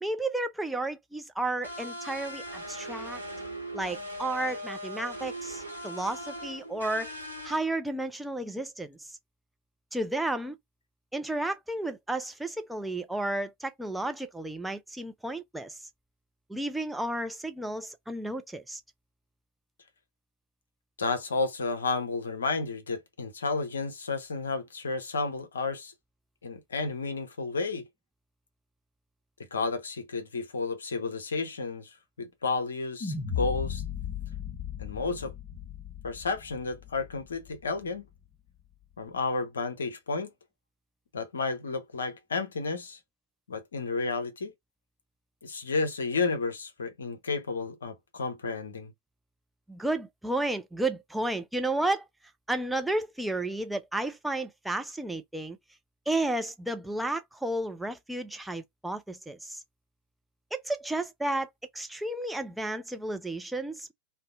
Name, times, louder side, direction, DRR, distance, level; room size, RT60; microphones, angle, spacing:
voice 1, 0.0-3.2 3.7-7.1 7.4-9.0 9.9-10.6 11.1-15.8 16.5-18.8 49.7-52.1 52.5-55.6 56.1-59.6 60.5-63.9, right 2 dB, 5° right, 0.4 m, -32 dB
sound 1, 1.6-7.6, equal, 90° right, 0.9 m, -39 dB
voice 2, 21.0-25.9 26.4-27.8 29.5-33.8 34.8-35.3 36.0-38.0 39.0-40.3 41.1-43.0 43.5-44.5 45.4-48.9, left 3 dB, 70° left, 0.6 m, -32 dB
sound 2, 33.0-37.4, left 8 dB, 25° left, 0.9 m, -36 dB
2.6 x 2.1 x 2.4 m
figure-of-eight pair, 90°, 0 cm